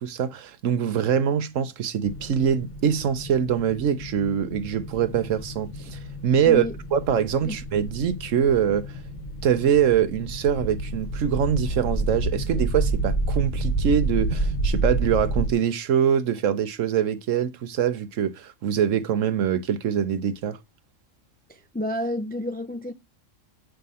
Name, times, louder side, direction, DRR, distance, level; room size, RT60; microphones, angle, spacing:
voice 1, 0.0-6.6 6.9-8.9 9.4-20.6, right 8 dB, 75° right, 1.2 m, -24 dB
sound 1, 2.0-15.5, right 2 dB, 35° left, 1.3 m, -29 dB
voice 2, 6.5-6.8 7.4-7.6 21.5-22.9, left 1 dB, 10° left, 0.4 m, -30 dB
8.8 x 3.3 x 5.5 m
omnidirectional pair, 1.3 m